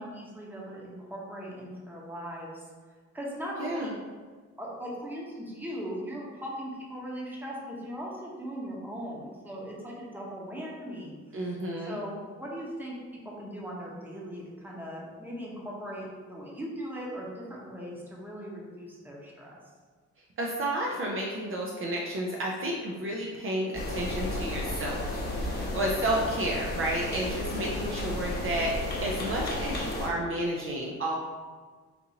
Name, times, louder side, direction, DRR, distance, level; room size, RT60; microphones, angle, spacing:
voice 1, 0.0-2.6 3.1-3.9 4.6-11.1 11.8-12.9 13.4-19.6 25.5-25.8 26.1-26.3, equal, 5° right, -4 dB, 0.9 m, -39 dB
voice 2, 3.6-3.9 11.3-12.0 20.4-31.1, right 1 dB, 45° right, -2 dB, 0.5 m, -31 dB
sound 1, 23.7-30.1, left 1 dB, 35° left, 0.9 m, -33 dB
4.2 x 2.6 x 2.7 m, 1.5 s
cardioid pair, 90°, 30 cm